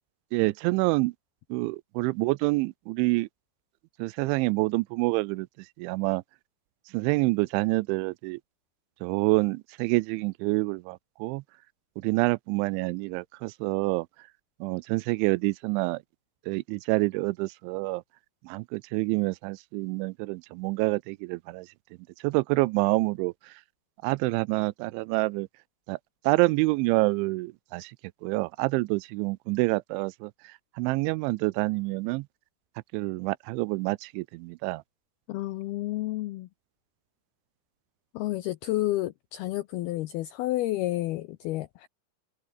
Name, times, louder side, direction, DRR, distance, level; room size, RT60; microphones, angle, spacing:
voice 1, 0.3-1.1 1.5-3.3 4.0-5.5 5.8-6.2 6.9-8.4 9.0-11.4 12.0-14.1 14.6-16.0 16.5-18.0 18.4-21.7 22.2-23.3 24.0-25.5 25.9-26.0 26.2-27.9 28.2-30.3 30.8-32.3 32.9-34.8, right 23 dB, 85° right, 2.9 m, -27 dB
voice 2, 35.3-36.5 38.1-41.9, left 16 dB, 85° left, 2.2 m, -30 dB
omnidirectional pair, 5.5 m